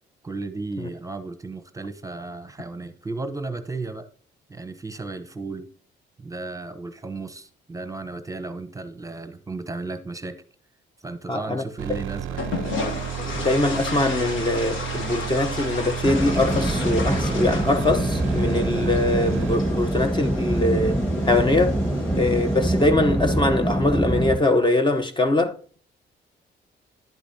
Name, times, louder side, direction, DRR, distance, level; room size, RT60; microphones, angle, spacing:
voice 1, 0.2-4.1 4.5-5.7 6.2-10.4 11.0-12.6, right 3 dB, 15° right, 0.9 m, -34 dB
voice 2, 11.3-11.6 13.2-21.0 21.3-21.8 22.2-25.8, left 2 dB, 25° left, 0.8 m, -22 dB
sound 1, 11.8-19.6, right 11 dB, 85° right, 0.5 m, -33 dB
sound 2, 12.4-22.9, left 3 dB, 85° left, 1.9 m, -34 dB
sound 3, 16.0-24.4, right 1 dB, 5° left, 1.4 m, -24 dB
10.5 x 8.5 x 2.8 m
cardioid pair, 90°, 20 cm